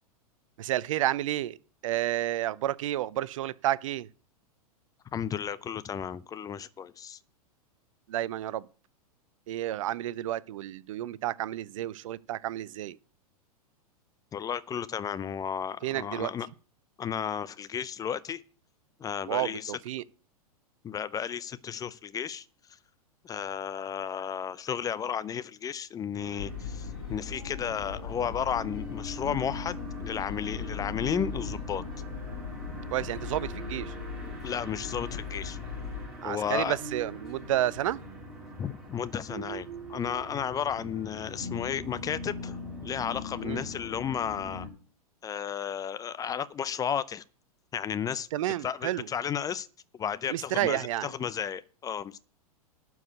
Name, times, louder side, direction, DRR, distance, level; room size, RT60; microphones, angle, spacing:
voice 1, 0.6-1.6 1.8-4.1 8.1-8.6 9.5-13.0 15.8-16.3 19.3-20.0 32.9-33.9 36.2-38.0 43.4-43.6 48.3-49.1 50.3-51.1, right 13 dB, 55° right, 0.6 m, -30 dB
voice 2, 5.1-7.2 14.3-16.5 17.0-18.4 19.0-19.8 20.8-22.5 23.2-31.8 34.4-35.6 36.2-36.8 38.6-44.7 45.2-47.2 47.7-48.3 48.6-49.7 49.9-52.2, left 8 dB, 20° left, 0.5 m, -33 dB
sound 1, 26.1-44.7, left 1 dB, ahead, 5.2 m, -42 dB
sound 2, 26.4-36.1, left 6 dB, 60° left, 2.3 m, -39 dB
sound 3, 30.4-30.7 31.0-32.2 32.4-33.1 33.4-35.3, right 5 dB, 35° right, 4.0 m, -54 dB
12.0 x 4.8 x 8.2 m
figure-of-eight pair, 100°, 20 cm